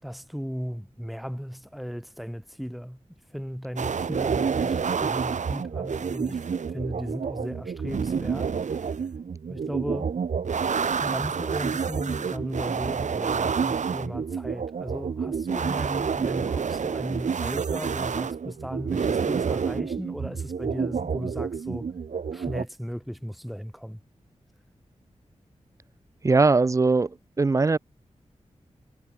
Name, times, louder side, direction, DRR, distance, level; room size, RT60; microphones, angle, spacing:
voice 1, 0.0-3.0 3.3-8.9 9.5-10.2 11.0-21.9 22.3-24.0, equal, ahead, 4.9 m, -36 dB
sound 1, 3.8-22.6, right 6 dB, 75° right, 1.5 m, -28 dB
voice 2, 26.2-27.1 27.4-27.8, right 3 dB, 25° right, 0.3 m, -20 dB
wide cardioid pair, 65°, 13 cm